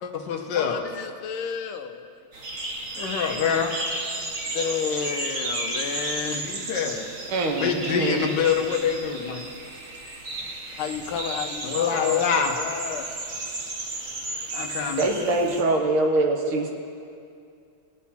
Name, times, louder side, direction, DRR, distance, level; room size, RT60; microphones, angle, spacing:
voice 1, 0.0-0.9 3.0-3.7 6.2-7.1 7.6-9.5 11.6-12.5 14.5-15.5, left 7 dB, 60° left, 3 dB, 1.5 m, -26 dB
voice 2, 0.5-2.0 2.9-3.6 4.3-6.7 10.8-13.1, left 7 dB, 80° left, 7 dB, 1.7 m, -32 dB
sound 1, 2.3-15.6, right 2 dB, 45° right, 1.6 m, -33 dB
voice 3, 7.3-8.4 15.0-16.7, right 2 dB, 75° right, 2 dB, 2.1 m, -24 dB
20.0 x 8.2 x 4.3 m, 2.4 s
omnidirectional pair, 2.4 m